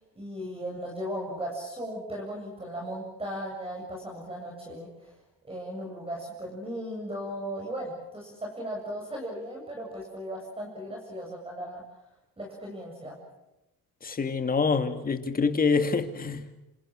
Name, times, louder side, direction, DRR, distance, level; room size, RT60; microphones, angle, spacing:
voice 1, 0.2-5.1 5.4-11.8 12.4-13.2, equal, 15° right, 7.8 m, -37 dB
voice 2, 14.0-16.4, left 5 dB, 25° left, 2.4 m, -26 dB
27.5 x 27.0 x 6.5 m
cardioid pair, 120°, 34 cm